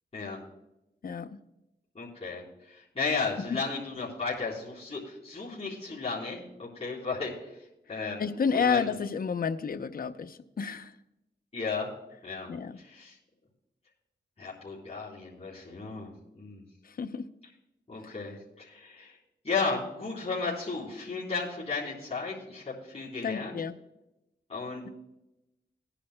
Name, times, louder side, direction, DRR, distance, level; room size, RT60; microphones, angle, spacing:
voice 1, 1.0-1.4 8.2-10.9 12.5-12.8 16.8-17.3 18.0-18.1 23.2-23.7, left 6 dB, 50° left, 10 dB, 0.7 m, -30 dB
voice 2, 1.9-8.2 8.5-8.9 11.5-11.9 12.2-12.5 12.8-13.2 14.4-16.6 17.9-19.2 19.4-23.5 24.5-24.9, left 4 dB, 35° left, -7 dB, 3.7 m, -34 dB
19.0 x 10.0 x 2.2 m, 0.93 s
cardioid pair, 60°, 19 cm